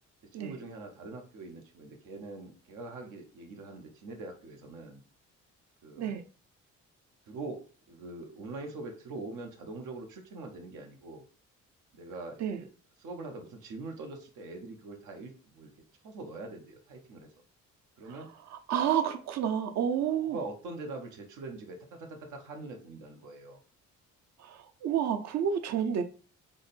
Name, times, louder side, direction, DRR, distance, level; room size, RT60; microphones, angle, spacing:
voice 1, 0.2-5.0 5.8-6.2 7.3-11.2 11.9-12.7 13.0-15.7 16.0-17.4 18.0-18.3 20.3-23.6, right 3 dB, 85° right, 0.9 m, -43 dB
voice 2, 18.7-20.4 24.4-26.0, right 9 dB, 65° right, 0.6 m, -29 dB
3.5 x 2.1 x 4.1 m
cardioid pair, 90°, 30 cm